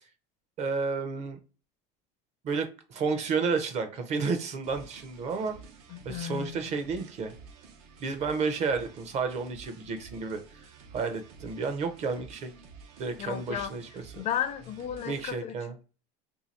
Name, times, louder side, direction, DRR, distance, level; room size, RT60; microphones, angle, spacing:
voice 1, 0.6-1.4 2.4-5.5 6.0-7.3 8.0-12.5 13.0-14.2 15.1-15.7, right 4 dB, 35° right, 0.6 m, -31 dB
sound 1, 4.6-15.3, right 5 dB, 75° right, 0.7 m, -51 dB
voice 2, 5.9-6.7 13.2-13.7 14.1-15.6, left 10 dB, 35° left, 0.4 m, -34 dB
2.8 x 2.7 x 4.1 m
supercardioid pair, 140°, 20 cm